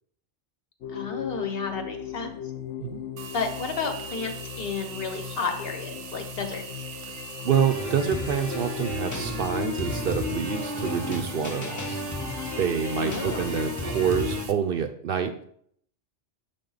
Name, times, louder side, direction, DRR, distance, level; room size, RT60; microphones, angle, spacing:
sound 1, 0.8-14.3, left 9 dB, 85° left, 1.0 m, -40 dB
voice 1, 0.9-2.4 3.3-6.6 13.0-13.5, left 5 dB, 55° left, 6 dB, 0.9 m, -32 dB
sound 2, 3.2-14.5, right 6 dB, 85° right, 1.0 m, -41 dB
voice 2, 7.4-12.0 12.6-15.4, right 8 dB, 60° right, 7 dB, 0.7 m, -27 dB
sound 3, 7.5-14.5, left 2 dB, 25° left, 0.4 m, -32 dB
6.9 x 3.8 x 3.9 m, 0.65 s
omnidirectional pair, 1.2 m